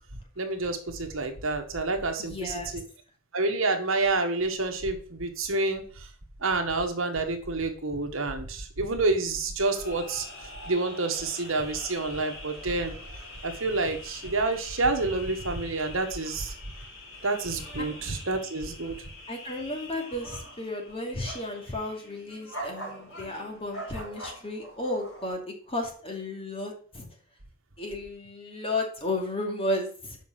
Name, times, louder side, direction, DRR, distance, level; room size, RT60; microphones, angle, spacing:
voice 1, 0.4-2.8 3.3-6.1 6.4-10.2 10.7-12.9 13.4-16.5 17.2-18.9, right 3 dB, 65° right, 5 dB, 1.6 m, -28 dB
voice 2, 2.2-2.7 17.8-17.9 19.3-27.1 27.8-30.2, left 1 dB, 25° left, 1 dB, 2.5 m, -33 dB
sound 1, 9.6-25.3, equal, 80° left, 4.1 m, -44 dB
7.2 x 5.5 x 7.4 m, 0.43 s
head